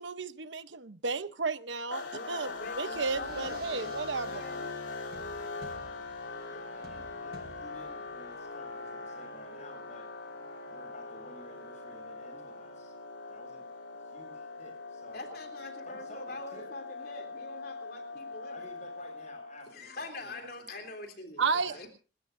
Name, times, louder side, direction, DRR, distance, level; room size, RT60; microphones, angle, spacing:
voice 1, 0.0-4.5 21.4-21.7, right 4 dB, 85° right, 12 dB, 0.9 m, -33 dB
sound 1, 1.9-19.8, left 3 dB, 80° left, 3.3 m, -41 dB
sound 2, 2.0-12.8, right 2 dB, 55° right, 1.3 m, -55 dB
voice 2, 2.1-4.7 15.1-18.6 19.7-21.9, left 2 dB, 55° left, 4 dB, 3.3 m, -44 dB
voice 3, 6.5-10.1 10.7-12.9 13.3-13.6 14.0-15.3 15.8-16.7 18.5-20.8 21.5-21.9, left 1 dB, 40° left, 3 dB, 7.1 m, -52 dB
28.0 x 13.5 x 2.6 m, 0.35 s
head